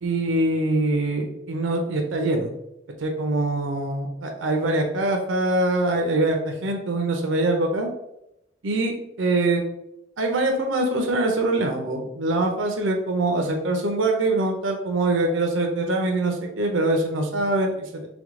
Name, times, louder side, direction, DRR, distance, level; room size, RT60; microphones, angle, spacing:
voice 1, 0.0-2.5 3.0-7.9 8.6-9.6 10.2-18.1, right 2 dB, 85° right, 3 dB, 0.6 m, -23 dB
3.5 x 3.1 x 3.6 m, 0.84 s
head